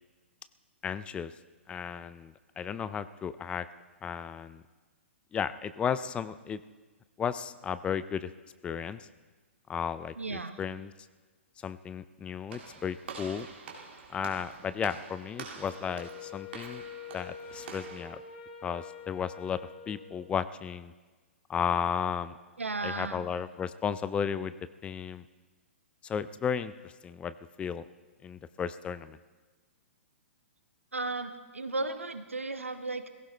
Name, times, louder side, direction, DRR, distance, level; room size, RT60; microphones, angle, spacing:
voice 1, 0.8-1.3 1.7-3.7 4.0-4.6 5.3-6.6 7.2-8.3 8.6-9.1 9.7-10.9 11.6-13.5 14.1-16.8 17.1-18.2 18.6-19.6 19.9-20.9 21.5-22.4 22.8-24.5 24.8-25.2 26.0-27.8 28.2-29.2, left 7 dB, 15° left, 15 dB, 0.4 m, -34 dB
voice 2, 10.2-10.6 22.6-23.2 30.9-33.1, right 3 dB, 85° right, 9 dB, 1.0 m, -35 dB
Walk footsteps / Slam, 12.5-18.1, right 5 dB, 60° right, 2.3 m, -46 dB
Wind instrument woodwind instrument, 15.7-20.3, left 6 dB, 40° left, 2.5 m, -46 dB
19.0 x 16.5 x 3.3 m, 1.3 s
figure-of-eight pair, 120°, 7 cm